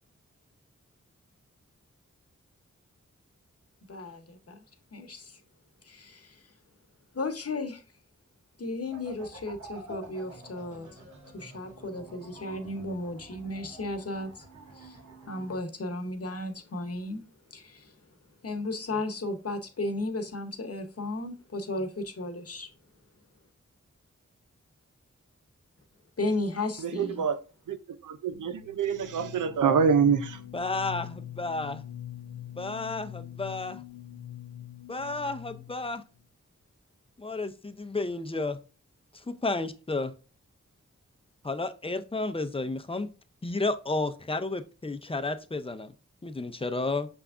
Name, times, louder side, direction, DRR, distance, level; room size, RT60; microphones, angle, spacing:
voice 1, 3.9-4.6 4.9-5.4 5.8-6.5 7.1-7.8 8.6-11.0 11.3-14.5 14.7-15.0 15.3-17.2 17.5-17.9 18.4-22.7 26.2-27.2, left 2 dB, 50° left, 1.0 m, -34 dB
sound 1, 8.9-15.6, right 2 dB, 70° right, 1.5 m, -49 dB
voice 2, 26.8-27.4 27.7-27.8 28.0-30.4, right 6 dB, 90° right, 0.6 m, -25 dB
sound 2, 28.3-36.0, left 11 dB, 70° left, 0.6 m, -43 dB
voice 3, 30.5-31.8 32.6-33.8 34.9-36.0 37.2-38.6 39.3-40.1 41.4-43.1 43.4-45.9 46.2-47.1, left 3 dB, 20° left, 0.6 m, -32 dB
5.9 x 3.5 x 2.4 m
cardioid pair, 45°, 30 cm